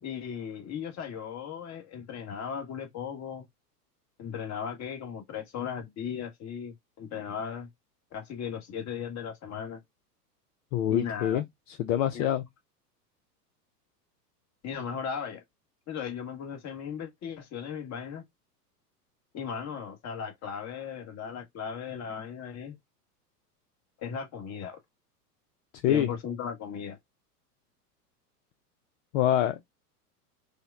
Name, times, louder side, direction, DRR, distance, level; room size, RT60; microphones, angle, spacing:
voice 1, 0.0-3.4 4.2-7.7 8.1-9.8 10.9-11.4 12.1-12.3 14.6-15.4 15.9-18.2 19.3-22.8 24.0-24.8 25.9-27.0, left 7 dB, 35° left, 1.4 m, -37 dB
voice 2, 10.7-12.4 25.8-26.1 29.1-29.6, left 11 dB, 55° left, 0.7 m, -26 dB
5.0 x 2.2 x 2.4 m
hypercardioid pair, 100°, 47 cm